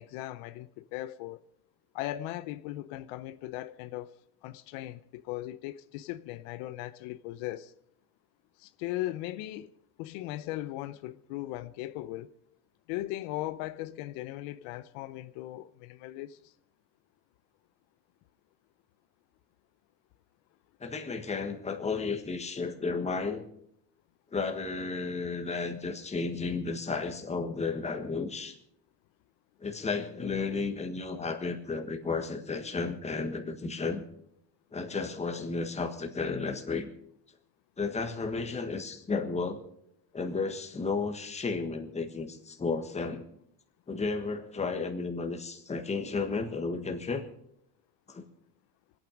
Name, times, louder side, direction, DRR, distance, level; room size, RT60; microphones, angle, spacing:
voice 1, 0.0-1.4 1.9-4.1 4.4-7.7 8.6-9.7 10.0-12.3 12.9-16.5, left 15 dB, 80° left, 0.8 m, -38 dB
voice 2, 20.8-23.4 24.3-28.5 29.6-34.0 34.7-36.9 37.8-39.6 40.1-43.2 43.9-47.3 48.1-48.3, left 4 dB, 15° left, 1.5 m, -33 dB
25.0 x 9.0 x 5.1 m
cardioid pair, 155°, 50 cm